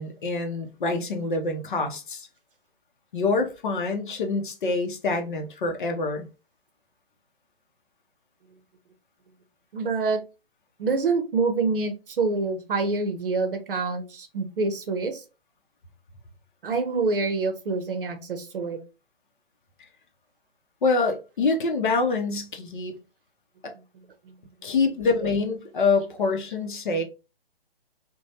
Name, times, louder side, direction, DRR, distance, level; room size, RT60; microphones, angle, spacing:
voice 1, 0.0-2.3 3.1-6.3 20.8-22.9 23.6-23.7 24.6-27.0, left 3 dB, 50° left, 0.7 m, -26 dB
voice 2, 9.7-10.2 10.8-15.2 16.6-18.8, right 4 dB, 60° right, 0.7 m, -26 dB
3.0 x 2.2 x 2.7 m
figure-of-eight pair, 130°, 31 cm